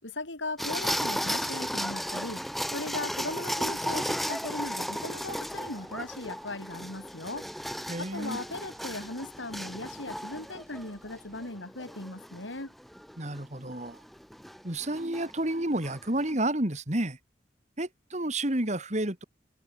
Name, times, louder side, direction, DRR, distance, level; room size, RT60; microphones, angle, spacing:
voice 1, 0.0-2.4 2.7-7.7 8.0-12.7, left 2 dB, 85° left, 4.8 m, -38 dB
sound 1, 0.6-16.3, equal, ahead, 2.6 m, -35 dB
sound 2, 4.9-11.5, right 1 dB, 15° right, 7.1 m, -59 dB
voice 2, 7.9-8.4 13.2-14.0 14.6-17.2 17.8-19.2, right 1 dB, 40° right, 2.7 m, -30 dB
head